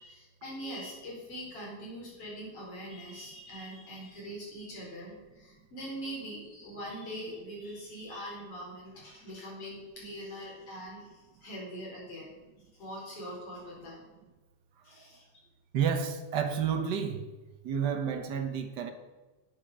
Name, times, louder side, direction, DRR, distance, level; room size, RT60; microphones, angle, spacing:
voice 1, 0.0-12.3 12.8-14.0 14.8-15.3, equal, 50° left, -4 dB, 5.6 m, -42 dB
voice 2, 15.7-17.3 17.6-18.9, right 7 dB, 60° right, 6 dB, 1.1 m, -30 dB
9.5 x 9.2 x 6.8 m, 1.2 s
omnidirectional pair, 3.5 m